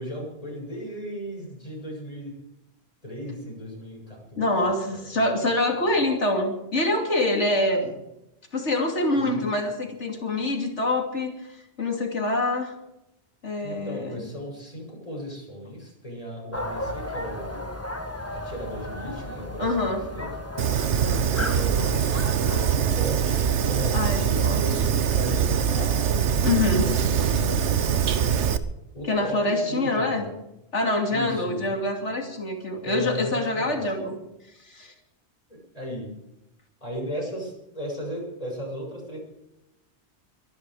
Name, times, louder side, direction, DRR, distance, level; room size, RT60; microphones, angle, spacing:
voice 1, 0.0-2.3 3.0-4.5 7.7-7.8 9.1-9.5 13.6-17.7 18.3-20.3 21.2-26.1 26.8-27.9 28.9-30.3 31.1-31.8 32.8-33.8 35.5-36.1 36.8-39.2, equal, 30° left, -1 dB, 7.0 m, -36 dB
voice 2, 4.4-7.9 8.5-12.7 13.4-14.3 19.6-20.1 23.9-24.6 26.4-26.9 29.0-30.3 30.7-34.2 34.6-34.9, left 2 dB, 90° left, 2 dB, 3.2 m, -25 dB
sound 1, 16.5-22.7, left 1 dB, 15° left, 1.3 m, -35 dB
Fire, 20.6-28.6, right 8 dB, 80° right, 1.2 m, -23 dB
23.5 x 11.5 x 5.0 m, 0.88 s
omnidirectional pair, 1.2 m